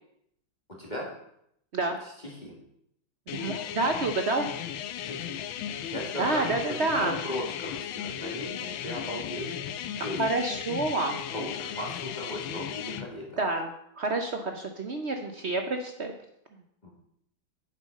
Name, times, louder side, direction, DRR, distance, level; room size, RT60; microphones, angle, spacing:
voice 1, 2.0-2.5 4.9-9.5 10.0-10.2 11.3-13.4 16.8-16.9, equal, 20° left, -3 dB, 2.0 m, -37 dB
sound 1, 3.3-13.1, left 9 dB, 90° left, 1.5 m, -36 dB
voice 2, 3.3-4.5 6.2-7.1 10.0-11.2 13.4-13.7 14.0-16.1, right 3 dB, 60° right, 5 dB, 0.7 m, -28 dB
8.2 x 7.4 x 5.3 m, 0.74 s
omnidirectional pair, 2.2 m